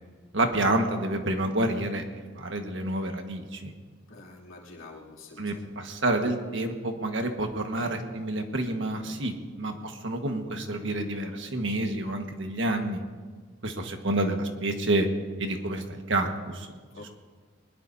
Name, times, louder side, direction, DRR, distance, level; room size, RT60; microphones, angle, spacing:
voice 1, 0.3-2.0 2.3-3.7 5.4-13.0 13.6-15.1 15.4-16.7 17.0-17.1, right 1 dB, 65° right, 4 dB, 1.6 m, -29 dB
voice 2, 4.1-5.7 7.8-8.1 9.6-9.7 16.9-17.1, left 2 dB, 85° left, -4 dB, 3.0 m, -46 dB
22.5 x 20.5 x 2.8 m, 1.5 s
head